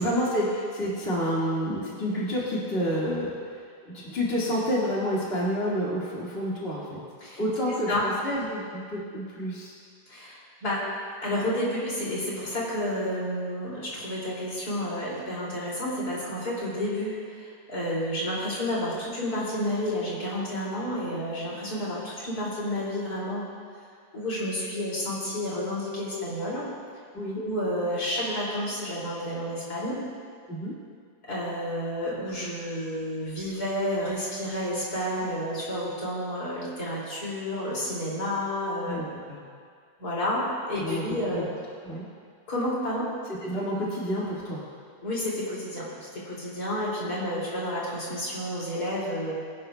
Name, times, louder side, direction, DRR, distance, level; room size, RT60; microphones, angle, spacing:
voice 1, 0.0-7.0 7.4-9.7 27.1-27.4 30.5-30.7 38.9-39.4 40.8-41.0 41.3-41.4 41.8-42.0 43.4-44.6, equal, 35° left, -6 dB, 2.3 m, -29 dB
voice 2, 7.7-8.1 10.1-10.9 11.2-23.4 24.1-26.7 27.3-30.0 31.3-39.0 40.0-41.4 42.5-43.1 45.0-49.3, left 1 dB, 65° left, -6 dB, 3.3 m, -30 dB
23.5 x 11.0 x 2.3 m, 2.1 s
omnidirectional pair, 1.8 m